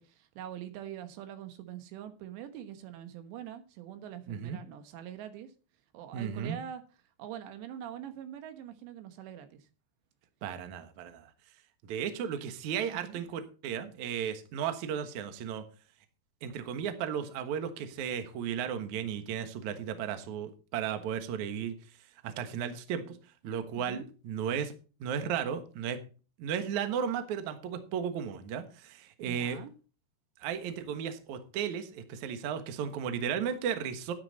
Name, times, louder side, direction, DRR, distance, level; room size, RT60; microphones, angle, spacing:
voice 1, 0.0-5.5 5.9-6.8 7.2-9.7 13.0-13.2 23.7-24.1 29.2-29.7, right 10 dB, 90° right, 3.5 m, -44 dB
voice 2, 4.3-4.6 6.1-6.6 10.4-11.3 11.8-15.6 16.4-21.8 22.2-23.2 23.4-24.7 25.0-26.0 26.4-29.6 30.4-34.1, right 8 dB, 60° right, 2.1 m, -34 dB
11.5 x 9.9 x 4.1 m
omnidirectional pair, 4.9 m